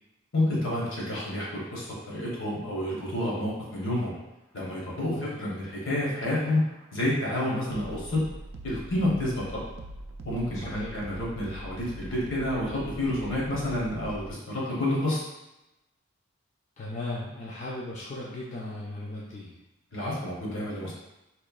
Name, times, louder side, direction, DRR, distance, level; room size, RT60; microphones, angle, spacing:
voice 1, 0.3-4.2 4.5-6.7 6.9-8.2 8.6-9.6 10.2-15.2 19.9-20.9, left 1 dB, 70° left, -5 dB, 0.8 m, -29 dB
sound 1, 5.7-14.3, right 1 dB, 85° right, 0.3 m, -43 dB
voice 2, 10.6-11.0 16.8-19.6, left 2 dB, 35° left, -6 dB, 0.3 m, -37 dB
2.9 x 2.0 x 2.3 m, 0.96 s
head